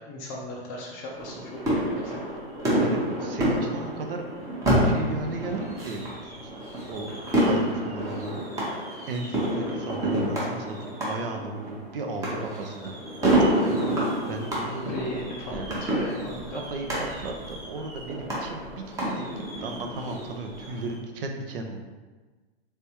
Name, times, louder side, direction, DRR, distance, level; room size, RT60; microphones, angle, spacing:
voice 1, 0.0-2.2 14.9-15.5 15.8-16.6, left 1 dB, 25° left, -2 dB, 0.4 m, -37 dB
sound 1, 1.1-21.0, right 1 dB, 10° right, 0.8 m, -28 dB
voice 2, 2.8-4.3 4.8-6.5 6.9-7.2 7.4-12.9 13.6-13.9 14.3-14.9 15.5-15.8 16.2-21.8, right 3 dB, 60° right, 4 dB, 0.7 m, -36 dB
3.4 x 3.3 x 2.9 m, 1.3 s
hypercardioid pair, 140°, 31 cm